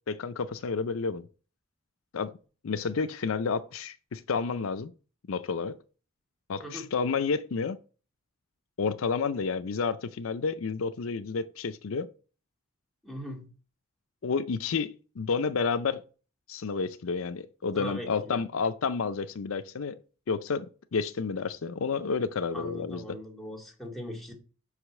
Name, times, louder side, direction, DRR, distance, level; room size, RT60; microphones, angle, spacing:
voice 1, 0.1-1.3 2.1-2.4 2.6-4.9 5.3-5.8 6.5-7.8 8.8-12.1 14.2-16.0 16.5-20.0 20.3-23.1, left 5 dB, 75° left, 0.5 m, -30 dB
voice 2, 13.0-13.5 17.7-18.4 22.5-24.3, left 1 dB, ahead, 2.1 m, -39 dB
6.2 x 5.0 x 6.0 m
head